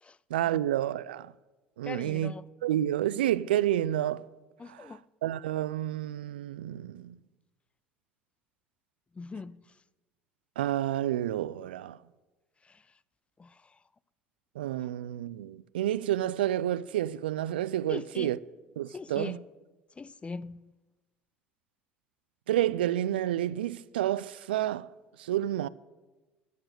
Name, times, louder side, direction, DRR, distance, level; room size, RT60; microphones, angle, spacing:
voice 1, 0.3-1.3 1.8-2.3 2.6-4.2 4.7-7.2 10.6-12.0 14.6-18.4 18.8-19.4 22.5-24.9 25.2-25.7, right 12 dB, 80° right, 0.3 m, -29 dB
voice 2, 1.8-2.5 4.6-5.0 9.1-9.6 12.6-12.8 13.4-13.8 17.9-18.3 18.9-19.4 20.0-20.7, left 4 dB, 20° left, 0.4 m, -41 dB
13.0 x 6.8 x 8.1 m
hypercardioid pair, 65°, 5 cm